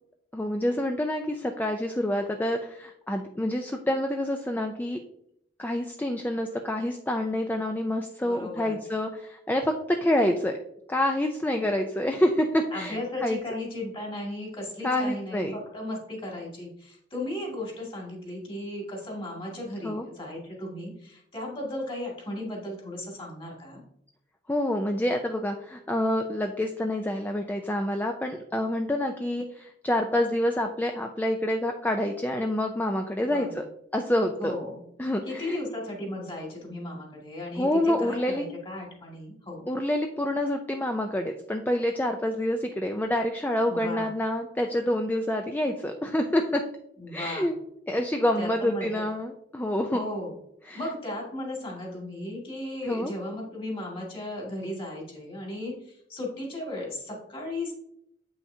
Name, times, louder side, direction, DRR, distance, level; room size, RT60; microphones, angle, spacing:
voice 1, 0.3-5.0 5.6-10.6 10.9-13.4 14.8-15.6 19.8-20.1 24.5-33.6 33.9-34.6 35.0-35.6 37.6-38.5 39.7-46.6 47.1-47.5 47.9-50.0 50.7-50.8 52.8-53.1, left 1 dB, 10° left, 4 dB, 0.4 m, -27 dB
voice 2, 8.2-8.8 12.7-23.8 33.2-33.5 34.4-34.8 35.3-39.7 43.7-44.1 47.0-47.5 48.4-49.0 49.9-50.3 50.7-57.7, left 1 dB, 30° left, -2 dB, 2.1 m, -36 dB
8.4 x 5.7 x 2.7 m, 0.76 s
head